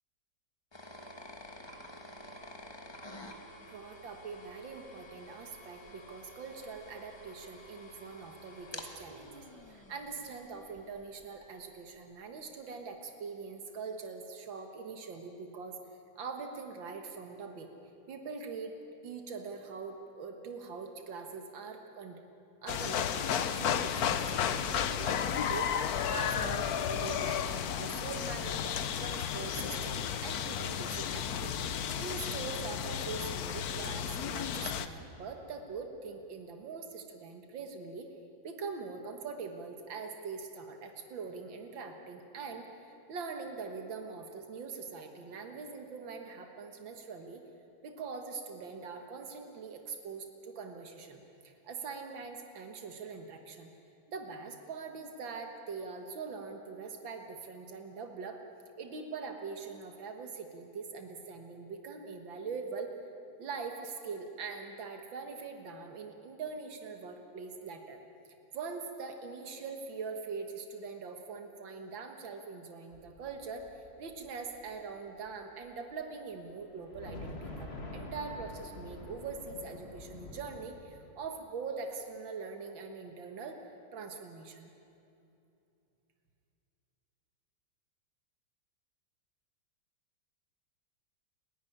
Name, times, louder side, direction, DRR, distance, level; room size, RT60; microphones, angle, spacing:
sound 1, 0.7-11.5, left 1 dB, 15° left, 1.4 m, -50 dB
voice 1, 3.7-15.8 16.2-17.7 18.1-18.8 19.0-22.2 22.6-38.1 38.4-47.4 47.8-53.7 54.1-58.4 58.8-62.9 63.4-68.0 68.5-83.6 83.9-84.7, right 4 dB, 85° right, 5 dB, 2.2 m, -43 dB
sound 2, 22.7-34.9, left 8 dB, 60° left, 1.2 m, -33 dB
sound 3, 72.9-75.7 76.0-76.1 76.6-80.7, left 2 dB, 35° left, 2.2 m, -46 dB
29.5 x 11.0 x 10.0 m, 2.7 s
omnidirectional pair, 2.0 m